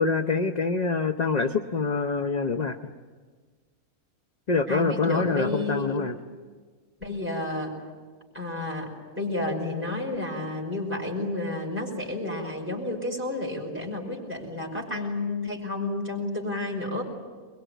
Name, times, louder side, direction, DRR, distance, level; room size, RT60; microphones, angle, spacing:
voice 1, 0.0-2.9 4.5-6.1, left 4 dB, 35° left, 6 dB, 0.7 m, -25 dB
voice 2, 4.7-6.0 7.0-7.8 8.3-17.0, left 2 dB, 10° right, -2 dB, 5.4 m, -31 dB
22.5 x 22.5 x 9.2 m, 1.5 s
omnidirectional pair, 1.5 m